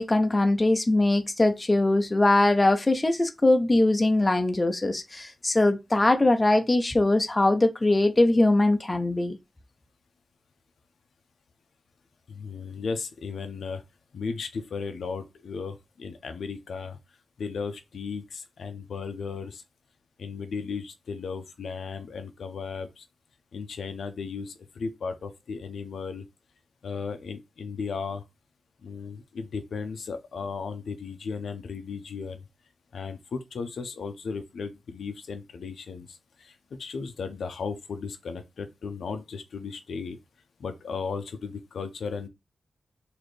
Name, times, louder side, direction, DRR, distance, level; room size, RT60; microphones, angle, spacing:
voice 1, 0.0-9.4, left 2 dB, 20° left, 0.4 m, -22 dB
voice 2, 12.3-13.8 14.1-17.0 17.4-19.6 20.2-23.1 23.5-26.2 26.8-28.2 28.8-32.5 32.9-40.2 40.6-42.3, left 5 dB, 75° left, 0.6 m, -35 dB
4.1 x 2.7 x 3.2 m
wide cardioid pair, 160°, 0 cm